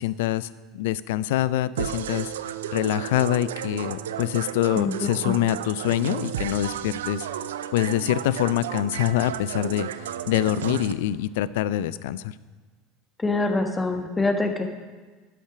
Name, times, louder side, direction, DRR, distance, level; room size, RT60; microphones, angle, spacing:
voice 1, 0.0-2.3 2.7-7.3 7.7-12.3, left 13 dB, 75° left, 18 dB, 0.3 m, -25 dB
sound 1, 1.8-10.9, right 10 dB, 85° right, 0.4 m, -33 dB
voice 2, 13.2-14.6, left 3 dB, 15° left, 5 dB, 1.3 m, -24 dB
11.5 x 5.9 x 5.9 m, 1.4 s
hypercardioid pair, 85°, 0 cm